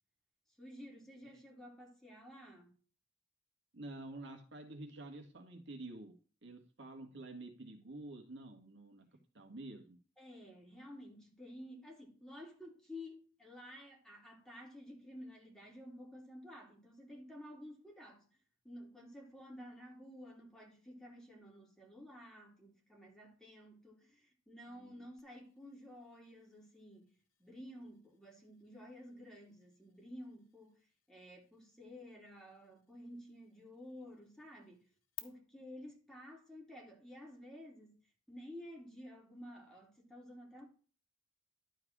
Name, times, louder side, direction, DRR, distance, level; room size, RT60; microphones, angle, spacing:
voice 1, 0.6-2.7 9.1-9.2 10.2-18.2 18.6-27.1 27.4-34.9 35.2-37.9 38.3-40.6, left 1 dB, 5° left, 3.3 m, -52 dB
voice 2, 3.7-6.1 6.4-9.0 9.3-10.0 24.7-25.1, right 2 dB, 65° right, 1.9 m, -49 dB
sound 1, 25.2-35.2, left 19 dB, 90° left, 1.2 m, -60 dB
12.0 x 4.7 x 6.1 m
head